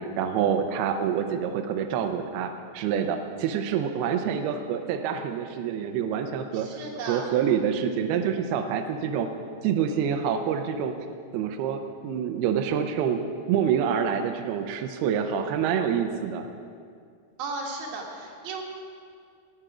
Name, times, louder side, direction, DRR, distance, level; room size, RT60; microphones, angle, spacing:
voice 1, 0.0-6.7 7.1-9.3 9.6-10.9 11.3-16.5, right 8 dB, 85° right, 6 dB, 2.2 m, -27 dB
voice 2, 6.5-7.2 17.4-18.6, right 3 dB, 60° right, -1 dB, 3.1 m, -35 dB
17.5 x 9.0 x 4.9 m, 2.2 s
omnidirectional pair, 5.4 m